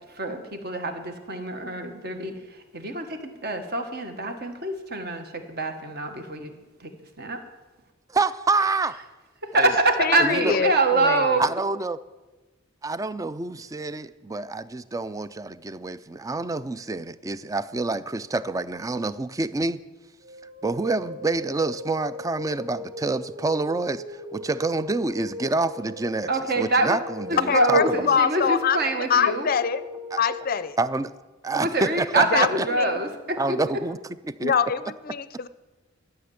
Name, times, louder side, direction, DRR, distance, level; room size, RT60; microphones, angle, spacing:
voice 1, 0.2-2.3 2.7-6.5 6.8-6.9 7.2-7.4 9.5-11.5 26.3-27.0 27.3-29.5 31.5-33.6, right 2 dB, 50° right, 1.4 m, -25 dB
voice 2, 8.1-9.0 9.5-9.7 10.2-10.6 11.4-12.0 12.8-19.8 20.6-24.0 24.3-28.0 30.1-30.2 30.8-31.1 31.4-32.7 33.4-34.0 34.3-34.5, right 3 dB, 15° right, 0.3 m, -27 dB
voice 3, 10.0-11.4 27.5-28.8 29.1-29.8 30.2-30.8 32.3-33.0 34.4-35.5, left 6 dB, 45° left, 0.5 m, -24 dB
sound 1, 20.2-30.5, left 1 dB, 75° right, 4.3 m, -39 dB
13.0 x 6.7 x 9.4 m
head